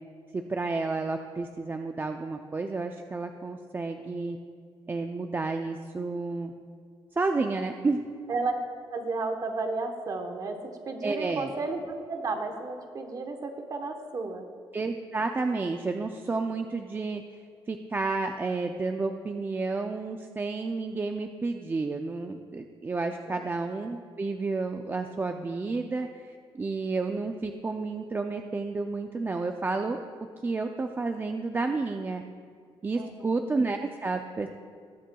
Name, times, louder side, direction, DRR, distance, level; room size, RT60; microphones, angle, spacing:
voice 1, 0.3-4.4 4.9-6.5 7.2-8.0 11.0-11.5 14.7-17.2 17.7-30.0 30.4-32.2 32.8-34.5, right 3 dB, 20° right, 5 dB, 0.4 m, -31 dB
voice 2, 8.9-10.6 10.8-14.5 33.0-33.4, right 3 dB, 40° right, 4 dB, 1.1 m, -33 dB
20.0 x 7.5 x 2.3 m, 2.1 s
cardioid pair, 130°, 10 cm